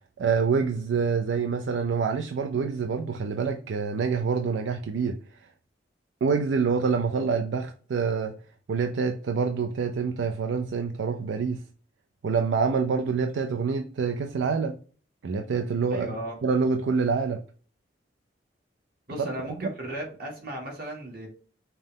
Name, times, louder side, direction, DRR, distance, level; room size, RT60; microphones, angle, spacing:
voice 1, 0.2-5.2 6.2-8.4 8.7-11.6 12.2-14.8 15.2-16.1 16.4-17.4 19.2-19.3 19.6-19.7, right 5 dB, 75° right, 0.4 m, -26 dB
voice 2, 15.9-16.4 19.1-21.3, right 1 dB, 55° right, 1.6 m, -36 dB
5.4 x 2.1 x 3.7 m
head